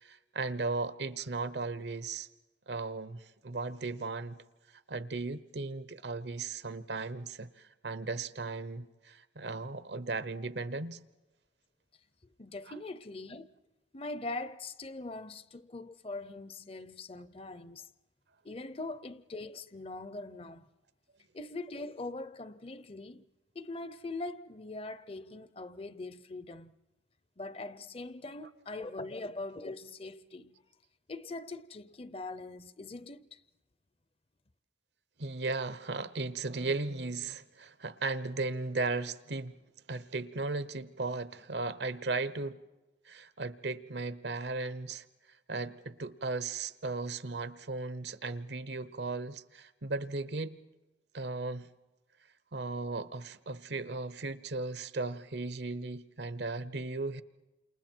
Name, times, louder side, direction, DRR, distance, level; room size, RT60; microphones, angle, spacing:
voice 1, 0.0-2.3 2.7-4.4 4.9-11.0 35.2-39.6 39.9-42.6 43.0-45.0 45.5-50.6 51.1-51.7 52.5-57.2, right 3 dB, 65° right, 0.9 m, -36 dB
voice 2, 12.4-13.5 13.9-17.9 18.4-20.7 21.3-23.3 23.5-26.8 27.4-30.5 31.1-33.4, left 2 dB, 30° left, 0.7 m, -42 dB
29.5 x 27.5 x 4.5 m
head